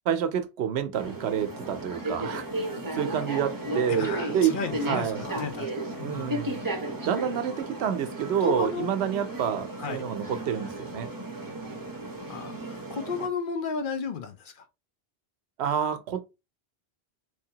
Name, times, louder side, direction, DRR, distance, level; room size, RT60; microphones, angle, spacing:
voice 1, 0.1-4.6 4.9-5.2 6.0-6.6 7.0-11.1 15.6-16.3, right 8 dB, 80° right, 0.8 m, -28 dB
sound 1, 0.9-13.3, right 1 dB, 20° right, 0.7 m, -35 dB
voice 2, 3.9-5.7 6.0-6.3 8.4-8.9 9.8-10.1 12.3-14.7, left 5 dB, 55° left, 0.7 m, -33 dB
3.4 x 2.8 x 2.7 m
omnidirectional pair, 1.1 m